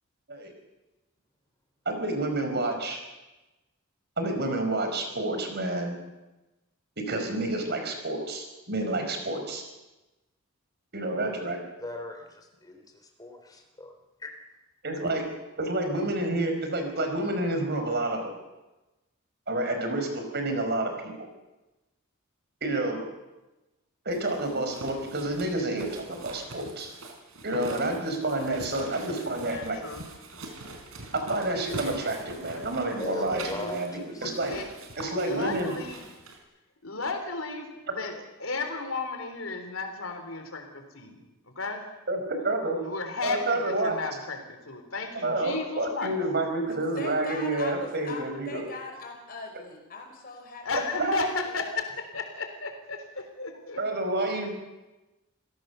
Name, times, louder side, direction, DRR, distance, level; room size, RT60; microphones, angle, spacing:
voice 1, 1.8-3.0 4.2-6.0 7.1-9.6 10.9-11.6 14.8-15.2 15.6-18.3 19.5-21.3 22.6-23.0 24.0-26.9 27.4-29.8 31.1-33.9 34.2-34.6 35.0-35.7 42.1-42.8 43.2-44.0 45.2-48.6 51.0-51.3 53.8-54.5, right 2 dB, 50° right, 5 dB, 4.8 m, -29 dB
voice 2, 11.8-12.8 13.2-13.9 14.2-14.3 32.5-32.6 33.0-34.3, left 2 dB, 20° left, 4 dB, 3.5 m, -38 dB
sound 1, 24.1-36.4, right 2 dB, 75° right, 4.4 m, -43 dB
voice 3, 29.1-30.2 34.4-34.7 35.0-36.2 36.8-41.9 42.8-46.1 50.6-53.8 54.2-54.5, left 4 dB, 70° left, 6 dB, 3.7 m, -35 dB
voice 4, 46.7-51.5, left 3 dB, 45° left, 3 dB, 5.1 m, -41 dB
27.0 x 17.0 x 6.9 m, 1.0 s
head